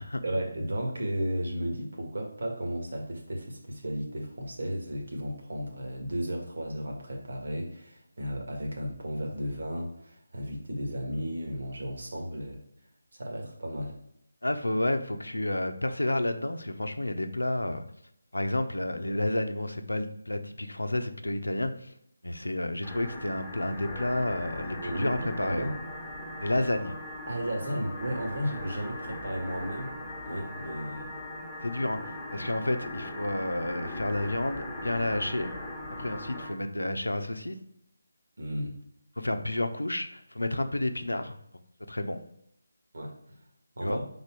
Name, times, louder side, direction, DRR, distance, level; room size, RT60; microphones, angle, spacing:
voice 1, 0.2-12.6 13.1-13.9 24.8-25.8 27.3-29.9 30.2-31.1 36.4-36.5 38.4-38.7 42.9-43.1 43.8-44.0, equal, 60° right, 1 dB, 1.7 m, -34 dB
voice 2, 14.4-17.8 18.3-21.9 22.2-25.7 26.4-27.0 31.6-35.5 36.0-37.6 39.2-41.4 41.9-42.2 43.8-44.0, left 1 dB, 90° left, 8 dB, 0.7 m, -30 dB
sound 1, 22.8-36.6, left 1 dB, 5° left, 1.2 m, -39 dB
5.2 x 4.0 x 4.5 m, 0.76 s
figure-of-eight pair, 160°, 0 cm